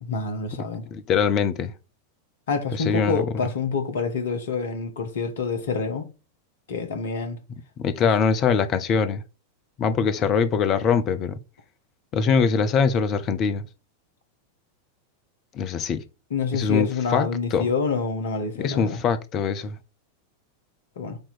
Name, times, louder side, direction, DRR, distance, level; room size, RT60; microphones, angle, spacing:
voice 1, 0.0-0.8 2.5-6.1 6.7-7.4 8.0-8.1 16.3-19.0 21.0-21.2, left 5 dB, 60° left, 1.4 m, -27 dB
voice 2, 0.9-1.7 2.9-3.2 7.8-9.2 9.8-11.4 12.1-13.6 15.5-16.0 16.5-17.6 18.6-19.7, left 6 dB, 35° left, 0.8 m, -23 dB
8.6 x 3.0 x 4.3 m
figure-of-eight pair, 90°, 0 cm